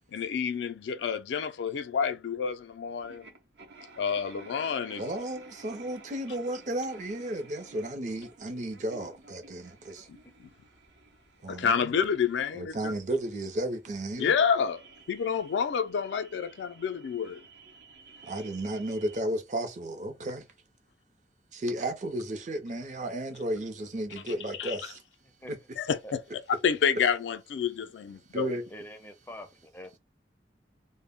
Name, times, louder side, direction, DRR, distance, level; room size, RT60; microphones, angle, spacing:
voice 1, 0.1-3.2 4.0-5.0 10.1-10.5 11.5-12.9 14.2-14.8 15.1-17.4 24.6-24.8 25.8-26.2 26.6-28.5, left 6 dB, 75° left, 0.3 m, -29 dB
sound 1, 2.5-2.6 3.0-19.2, right 3 dB, 75° right, 0.7 m, -54 dB
voice 2, 5.0-10.1 11.4-12.0 12.5-14.3 18.2-20.4 21.5-25.0 28.3-28.6, right 1 dB, 40° right, 0.5 m, -33 dB
voice 3, 10.0-10.4 25.4-25.5 26.0-26.1 28.7-30.0, equal, 10° left, 0.4 m, -46 dB
2.1 x 2.0 x 3.5 m
head